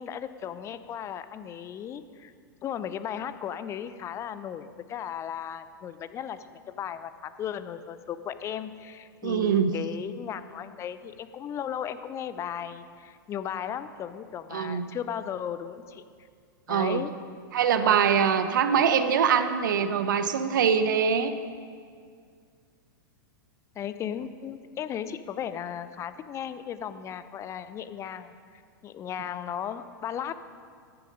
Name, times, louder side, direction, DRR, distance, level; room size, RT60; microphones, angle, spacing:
voice 1, 0.0-2.3 2.6-16.1 16.7-17.1 17.8-18.0 23.8-30.3, left 9 dB, 25° left, 12 dB, 0.6 m, -36 dB
voice 2, 9.2-9.7 14.5-14.8 16.7-17.0 17.5-21.3, right 7 dB, 65° right, 10 dB, 0.8 m, -23 dB
14.0 x 10.5 x 5.3 m, 2.1 s
figure-of-eight pair, 100°, 11 cm